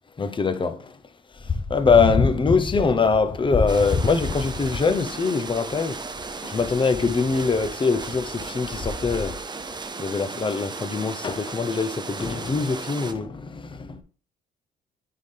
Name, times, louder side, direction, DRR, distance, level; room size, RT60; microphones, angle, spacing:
voice 1, 0.2-1.0 1.4-6.0 6.4-9.4 9.7-13.9, left 4 dB, 25° left, 0.7 m, -23 dB
sound 1, 3.7-13.1, right 4 dB, 20° right, 0.6 m, -35 dB
9.6 x 3.8 x 3.3 m
cardioid pair, 90°, 20 cm